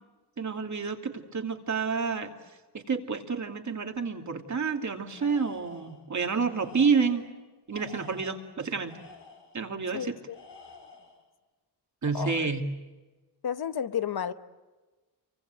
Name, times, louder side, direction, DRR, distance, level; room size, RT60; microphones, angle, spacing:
voice 1, 0.4-2.3 2.7-7.2 7.7-9.0 9.5-10.1 12.0-12.6, right 5 dB, 45° right, 4 dB, 2.7 m, -29 dB
Tools, 5.1-6.0 6.5-7.3 7.7-9.6 10.3-11.2, left 4 dB, 80° left, 7.8 m, -51 dB
voice 2, 12.1-12.5 13.4-14.3, left 8 dB, 65° left, 11 dB, 1.1 m, -31 dB
29.0 x 24.5 x 7.8 m, 1.2 s
wide cardioid pair, 120°, 41 cm